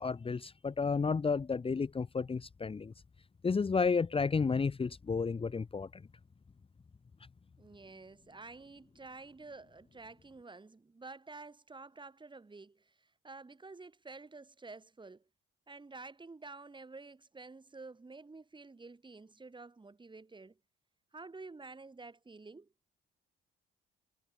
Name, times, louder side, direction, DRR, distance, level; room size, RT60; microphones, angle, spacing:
voice 1, 0.0-2.9 3.4-5.9, left 5 dB, 30° left, 1.1 m, -32 dB
voice 2, 7.6-15.2 15.7-20.6 21.1-22.7, right 3 dB, 25° right, 7.3 m, -50 dB
cardioid pair, 90°, 20 cm